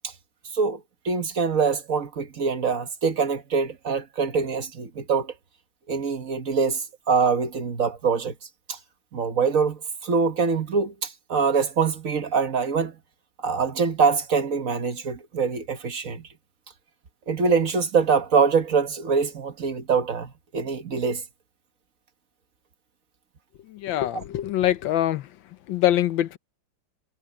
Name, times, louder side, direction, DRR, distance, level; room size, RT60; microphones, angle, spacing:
voice 1, 1.0-5.3 5.9-8.3 8.7-8.8 9.1-12.9 13.4-16.3 17.3-21.2, right 5 dB, 50° right, 1.5 m, -24 dB
voice 2, 23.7-25.3 25.7-26.4, left 12 dB, 85° left, 1.5 m, -24 dB
omnidirectional pair, 2.0 m